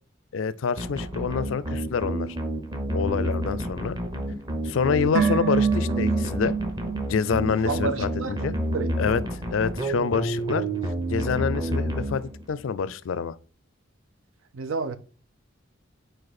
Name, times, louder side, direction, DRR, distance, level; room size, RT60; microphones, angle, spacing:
voice 1, 0.3-2.4 2.9-4.0 4.6-6.5 7.1-8.5 9.0-10.6 11.1-13.4, left 6 dB, 80° left, 0.4 m, -27 dB
sound 1, 0.8-12.6, right 1 dB, 20° right, 0.8 m, -29 dB
sound 2, 5.1-8.5 8.7-8.8, right 6 dB, 50° right, 0.9 m, -27 dB
voice 2, 7.6-8.9 14.5-15.0, right 4 dB, 90° right, 0.6 m, -30 dB
5.2 x 4.5 x 4.1 m
head